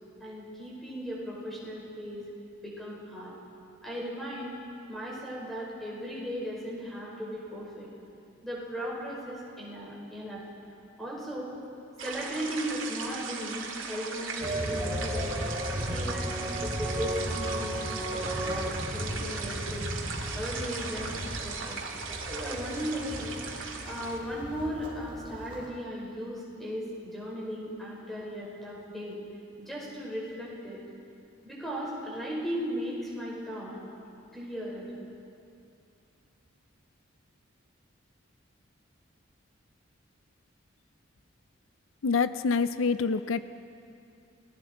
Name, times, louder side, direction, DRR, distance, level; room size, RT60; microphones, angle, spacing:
voice 1, 0.2-2.2 2.6-3.3 3.8-4.5 4.9-7.9 8.4-10.4 11.0-11.5 12.0-15.4 15.9-18.7 18.9-19.9 20.4-21.8 22.4-23.4 23.8-29.2 29.6-30.8 31.4-33.8 34.3-34.9, equal, ahead, -5 dB, 5.4 m, -37 dB
sound 1, 12.0-24.2, right 4 dB, 75° right, 2.4 m, -38 dB
sound 2, 14.4-25.7, equal, 25° right, 2.7 m, -35 dB
voice 2, 42.0-43.4, left 4 dB, 80° left, 12 dB, 0.5 m, -26 dB
30.0 x 19.5 x 4.6 m, 2.6 s
head